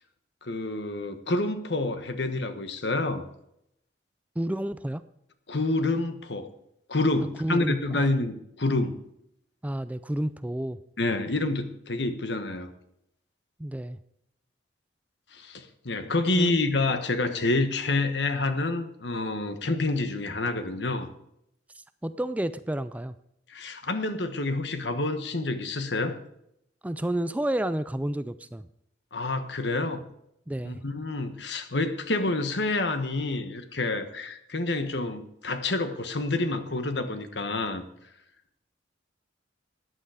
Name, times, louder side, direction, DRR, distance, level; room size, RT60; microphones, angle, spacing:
voice 1, 0.4-3.2 5.5-6.5 6.9-8.9 11.0-12.7 15.3-21.1 23.5-26.2 29.1-30.0 30.6-37.8, left 2 dB, 70° left, 9 dB, 1.3 m, -28 dB
voice 2, 4.4-5.0 7.4-8.1 9.6-10.8 13.6-14.0 16.3-16.5 22.0-23.1 26.8-28.7 30.5-30.8, right 1 dB, 10° right, 13 dB, 0.4 m, -30 dB
14.0 x 9.6 x 5.0 m, 0.77 s
head